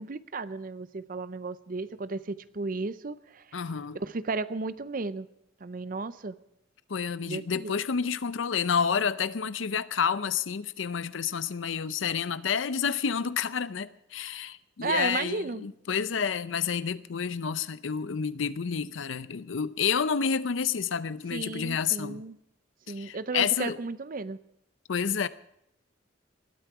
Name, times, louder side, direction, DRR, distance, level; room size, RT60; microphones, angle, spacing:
voice 1, 0.0-3.6 3.9-5.3 5.6-6.4 7.3-7.7 14.8-15.7 21.3-22.4 22.9-24.4, right 3 dB, 45° right, 0.5 m, -34 dB
voice 2, 3.5-4.0 6.9-22.2 22.9-23.8 24.9-25.3, left 6 dB, 80° left, 0.6 m, -29 dB
20.0 x 12.5 x 4.8 m
head